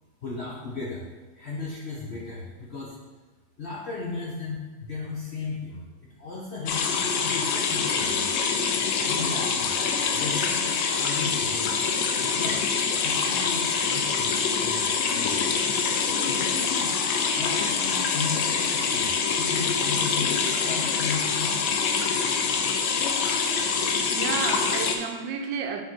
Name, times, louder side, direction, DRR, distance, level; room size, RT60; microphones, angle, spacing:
voice 1, 0.2-1.1 1.3-2.9 3.6-8.2 9.0-9.7 10.1-11.9 12.3-12.6 13.0-15.5 16.3-19.1 19.4-21.6, left 4 dB, 55° left, -5 dB, 0.7 m, -36 dB
sound 1, 6.7-25.0, left 5 dB, 70° left, 1.2 m, -25 dB
voice 2, 24.1-25.8, right 6 dB, 80° right, 5 dB, 1.2 m, -31 dB
6.6 x 3.6 x 4.4 m, 1.3 s
omnidirectional pair, 2.0 m